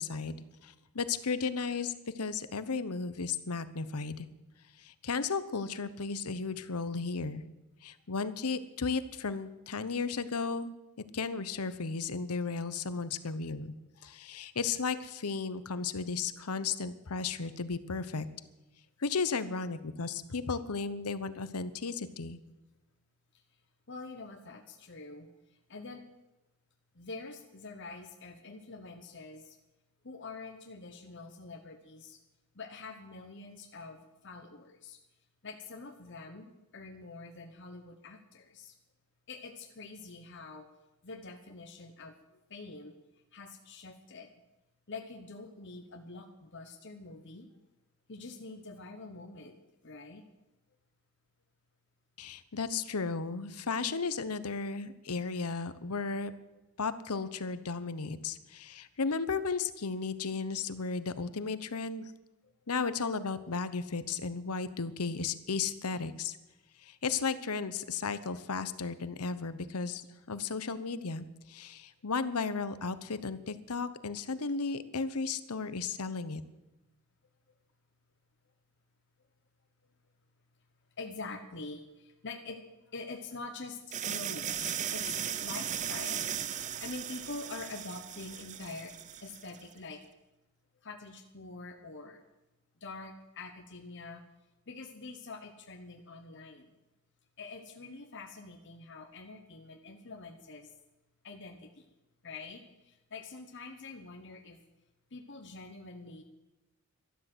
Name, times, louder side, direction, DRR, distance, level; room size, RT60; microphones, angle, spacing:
voice 1, 0.0-4.3 4.8-7.4 7.8-10.7 11.1-13.7 14.0-18.3 19.0-22.4 52.2-56.3 56.8-62.1 62.7-66.4 66.8-76.4, left 4 dB, 85° left, 13 dB, 0.9 m, -34 dB
voice 2, 23.9-26.0 26.9-29.6 30.0-32.2 32.5-35.0 35.4-38.7 39.3-40.7 41.0-42.9 43.3-44.3 44.9-47.5 48.1-49.5 49.8-50.2 62.4-62.5 81.0-86.3 86.8-88.9 89.2-90.0 90.8-92.2 92.8-94.2 94.7-96.7 97.4-100.7 101.2-101.9 102.2-104.6 105.1-106.2, left 3 dB, 55° left, 4 dB, 1.1 m, -45 dB
sound 1, 83.9-89.6, right 9 dB, 35° right, 0.5 m, -37 dB
12.5 x 12.5 x 7.9 m, 1.0 s
head